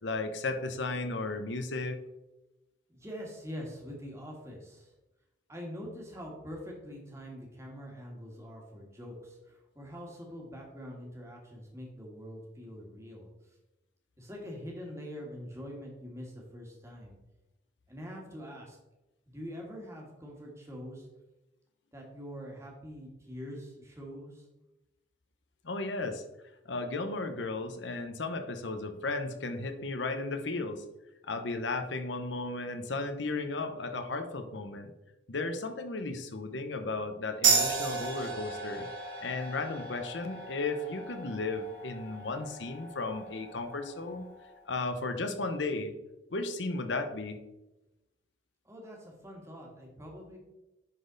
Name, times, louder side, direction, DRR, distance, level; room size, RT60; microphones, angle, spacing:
voice 1, 0.0-2.0 25.6-26.2 26.6-30.8 31.3-34.9 35.3-38.9 39.2-44.3 44.7-45.9 46.3-47.4, left 3 dB, 80° left, 7 dB, 0.9 m, -34 dB
voice 2, 2.9-4.9 5.5-13.3 14.2-17.2 17.9-18.8 19.3-21.1 21.9-24.4 48.6-50.4, equal, 15° right, -1 dB, 1.7 m, -44 dB
sound 1, 37.4-44.5, right 4 dB, 80° right, 2.8 m, -34 dB
10.5 x 4.1 x 4.0 m, 0.99 s
head